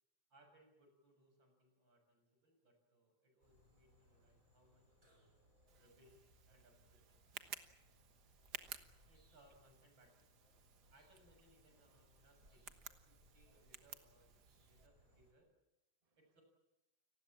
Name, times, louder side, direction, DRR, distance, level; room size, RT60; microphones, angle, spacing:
voice 1, 0.3-5.2 5.7-7.0 9.1-10.2 10.9-15.5 16.1-16.4, right 1 dB, 80° right, 4 dB, 7.9 m, -70 dB
sound 1, 3.4-15.3, equal, 45° right, 6.3 m, -70 dB
Tick, 5.7-14.9, right 7 dB, 60° right, 1.8 m, -56 dB
voice 2, 7.3-9.1 10.7-10.9 16.0-16.2, right 5 dB, 20° right, 8 dB, 1.7 m, -86 dB
29.5 x 19.5 x 7.4 m, 0.91 s
omnidirectional pair, 2.0 m